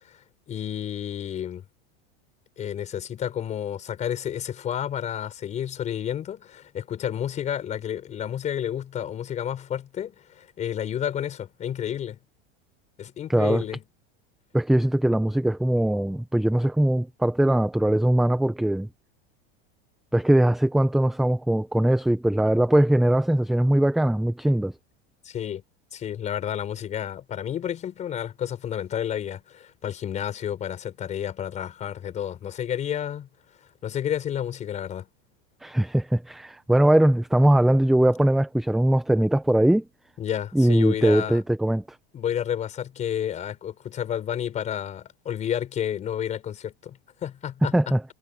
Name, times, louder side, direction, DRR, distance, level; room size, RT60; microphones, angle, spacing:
voice 1, 0.5-1.6 2.6-12.2 13.0-13.8 25.2-25.6 25.9-33.3 33.8-35.1 40.2-41.4 42.1-47.9, left 9 dB, 25° left, 5.3 m, -31 dB
voice 2, 13.3-13.6 14.5-18.9 20.1-24.7 35.6-39.8 40.5-41.8 47.7-48.0, right 1 dB, ahead, 0.5 m, -21 dB
supercardioid pair, 165°, 29 cm